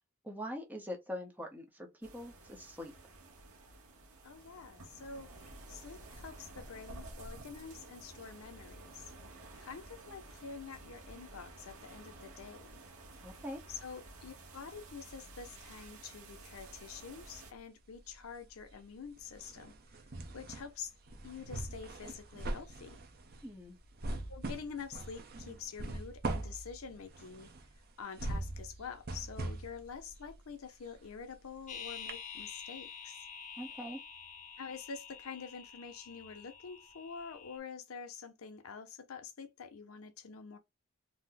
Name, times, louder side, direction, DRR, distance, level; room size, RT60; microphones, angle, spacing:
voice 1, 0.2-2.9 13.2-13.6 23.4-23.8 33.6-34.0, equal, 10° right, 0.7 m, -43 dB
sound 1, 2.0-17.5, right 2 dB, 85° right, 0.9 m, -52 dB
voice 2, 4.2-5.3 5.7-9.1 9.6-12.8 13.7-19.7 20.3-20.9 21.2-23.0 24.3-27.5 28.0-33.3 34.6-40.6, left 6 dB, 90° left, 0.6 m, -47 dB
sound 2, 16.5-17.6 17.9-31.7 32.1-32.2, right 2 dB, 50° right, 0.6 m, -42 dB
sound 3, 31.7-37.6, left 7 dB, 40° left, 0.8 m, -48 dB
2.7 x 2.0 x 3.7 m
head